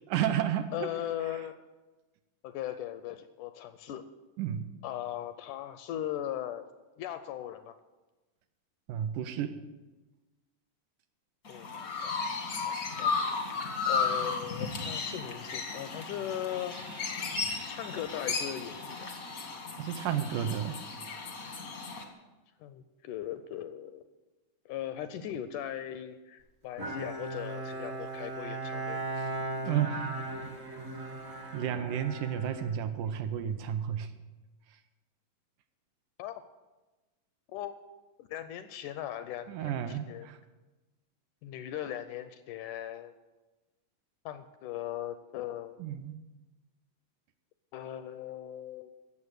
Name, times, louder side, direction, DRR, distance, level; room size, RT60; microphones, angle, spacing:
voice 1, 0.1-0.9 1.3-1.4 4.4-4.7 8.9-9.6 12.7-13.1 19.8-20.8 29.2-29.3 29.6-30.1 31.5-34.1 39.5-40.4 45.8-46.2, right 9 dB, 80° right, 8 dB, 2.1 m, -32 dB
voice 2, 0.7-1.6 2.4-4.0 4.8-6.7 7.0-7.8 11.5-12.2 12.7-17.1 17.7-19.1 22.6-24.0 24.7-29.0 36.2-36.4 37.5-37.8 38.2-40.3 41.4-43.1 44.3-45.8 47.7-48.9, left 11 dB, 80° left, 11 dB, 1.9 m, -39 dB
Chirp tweet, 11.5-22.0, left 4 dB, 55° left, 0.9 m, -34 dB
Bowed string instrument, 26.8-33.5, right 2 dB, 40° right, 0.9 m, -38 dB
16.0 x 7.1 x 6.4 m, 1.1 s
omnidirectional pair, 3.9 m